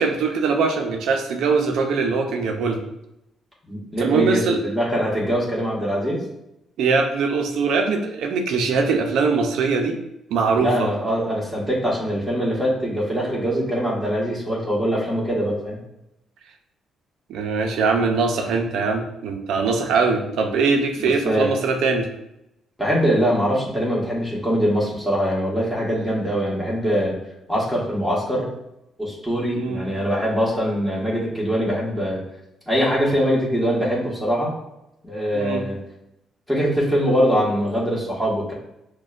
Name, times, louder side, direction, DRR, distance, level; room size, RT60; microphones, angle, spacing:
voice 1, 0.0-2.9 4.0-4.6 6.8-10.0 10.3-10.9 17.3-22.1 29.5-29.8 35.3-35.7, right 4 dB, 80° right, 4 dB, 0.4 m, -22 dB
voice 2, 3.7-6.2 10.6-15.8 21.0-21.5 22.8-27.2 27.5-28.4 29.0-32.2 32.7-34.5 35.0-35.8 36.5-38.5, equal, 5° left, -6 dB, 1.4 m, -23 dB
6.2 x 2.2 x 2.4 m, 0.85 s
cardioid pair, 90°, 0 cm